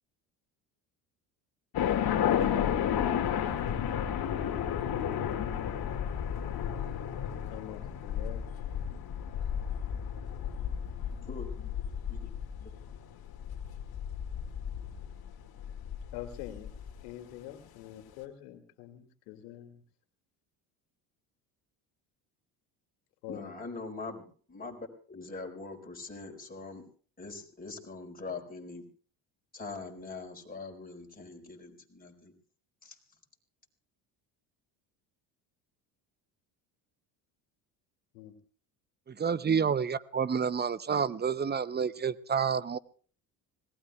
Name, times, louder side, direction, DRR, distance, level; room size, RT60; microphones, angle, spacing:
sound 1, 1.7-16.9, left 9 dB, 55° left, 2.1 m, -32 dB
voice 1, 2.4-2.7 7.5-8.5 16.1-16.7 17.0-19.8 23.2-23.5 38.1-38.4, left 12 dB, 85° left, 6 dB, 2.5 m, -44 dB
voice 2, 11.3-11.7 12.6-12.7 23.3-26.8 27.2-28.9 29.5-32.3 32.8-33.0, left 3 dB, 20° left, 1 dB, 4.5 m, -43 dB
voice 3, 39.2-42.8, right 6 dB, 20° right, 17 dB, 0.7 m, -29 dB
25.5 x 19.0 x 2.3 m, 0.42 s
supercardioid pair, 80°, 45 cm